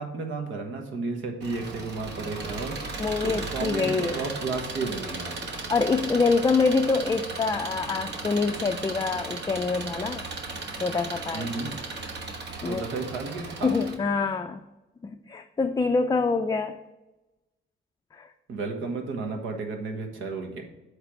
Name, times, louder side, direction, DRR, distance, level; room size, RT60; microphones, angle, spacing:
voice 1, 0.0-5.4 11.3-11.8 12.6-13.7 18.5-20.6, right 3 dB, 80° right, 4 dB, 1.4 m, -33 dB
Engine, 1.4-13.9, right 3 dB, 60° right, 1.2 m, -36 dB
voice 2, 3.0-4.2 5.7-10.2 10.8-11.5 12.6-12.8 13.6-14.6 15.0-16.8 18.2-18.3, left 4 dB, 20° left, 5 dB, 0.4 m, -25 dB
8.0 x 3.4 x 6.3 m, 1.0 s
cardioid pair, 90°, 20 cm